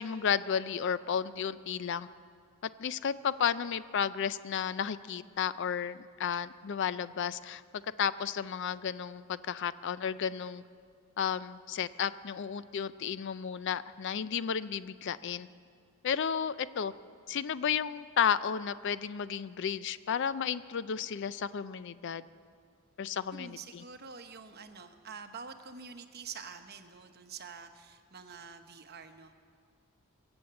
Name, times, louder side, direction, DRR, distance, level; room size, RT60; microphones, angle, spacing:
voice 1, 0.0-2.1 2.8-7.6 8.0-10.6 11.2-15.5 16.0-16.9 17.3-22.2 23.0-23.8, left 7 dB, 55° left, 16 dB, 0.4 m, -33 dB
voice 2, 23.3-29.4, right 5 dB, 50° right, 7 dB, 0.9 m, -47 dB
22.0 x 8.0 x 7.7 m, 2.2 s
head